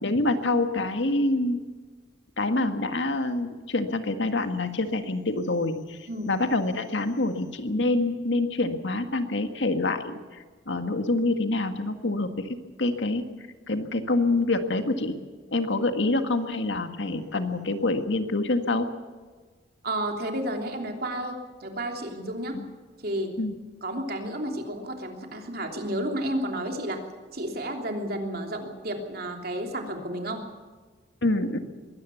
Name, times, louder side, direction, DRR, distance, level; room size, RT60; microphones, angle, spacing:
voice 1, 0.0-1.6 2.4-10.2 10.6-13.3 13.7-15.2 15.5-18.9 22.5-22.7 23.4-23.5 31.2-31.6, left 2 dB, 70° left, 7 dB, 1.8 m, -26 dB
voice 2, 19.8-22.6 23.0-23.3 23.8-27.0 27.3-30.4, right 1 dB, 50° right, 3 dB, 3.1 m, -31 dB
22.5 x 17.5 x 7.1 m, 1.4 s
head